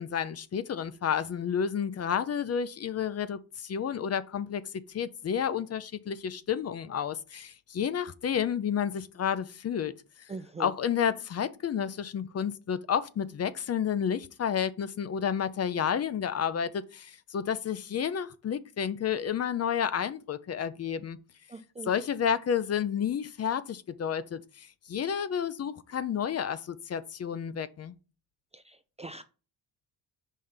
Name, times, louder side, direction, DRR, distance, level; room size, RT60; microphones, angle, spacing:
voice 1, 0.0-4.6 4.9-9.9 10.6-21.2 21.8-27.9, left 8 dB, 40° left, 0.5 m, -31 dB
voice 2, 10.3-10.7 21.5-21.9 28.5-29.2, right 3 dB, 15° right, 0.3 m, -42 dB
5.5 x 3.3 x 5.6 m
cardioid pair, 105°, 41 cm